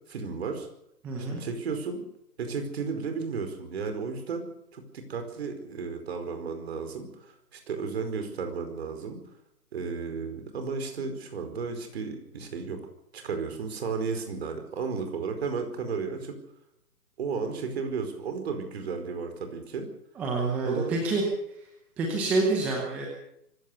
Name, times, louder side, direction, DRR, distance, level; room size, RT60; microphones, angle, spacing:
voice 1, 0.1-0.7 1.3-2.0 2.4-4.5 4.7-9.2 9.7-12.9 13.1-16.3 17.2-19.9 20.6-20.9, right 5 dB, 40° right, 6 dB, 4.8 m, -33 dB
voice 2, 1.0-1.4 20.2-21.2 22.0-23.1, right 3 dB, 5° right, -1 dB, 0.9 m, -27 dB
25.0 x 16.0 x 6.9 m, 0.78 s
figure-of-eight pair, 150°, 47 cm